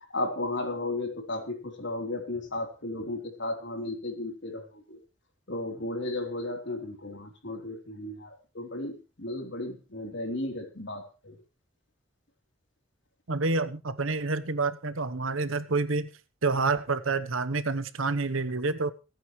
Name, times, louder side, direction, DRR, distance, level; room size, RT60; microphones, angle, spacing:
voice 1, 0.1-5.0 5.5-11.4, left 2 dB, 60° left, 3 dB, 3.6 m, -34 dB
voice 2, 13.3-16.1 16.4-18.9, right 3 dB, 90° right, 13 dB, 1.0 m, -28 dB
27.0 x 9.3 x 3.2 m, 0.32 s
head